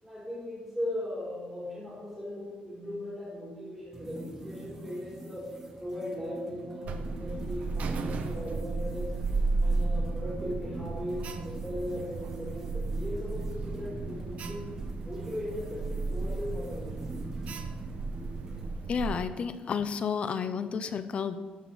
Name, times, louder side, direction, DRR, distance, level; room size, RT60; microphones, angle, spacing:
voice 1, 0.0-5.5 5.8-9.2 9.6-14.7 15.0-17.0, left 1 dB, ahead, -8 dB, 4.0 m, -38 dB
sound 1, 3.9-18.7, right 1 dB, 15° right, 1.7 m, -46 dB
Alarm, 6.8-19.2, right 3 dB, 55° right, 0.9 m, -33 dB
voice 2, 18.9-21.4, left 6 dB, 40° left, 11 dB, 0.7 m, -31 dB
13.0 x 5.8 x 6.2 m, 1.4 s
cardioid pair, 155°, 3 cm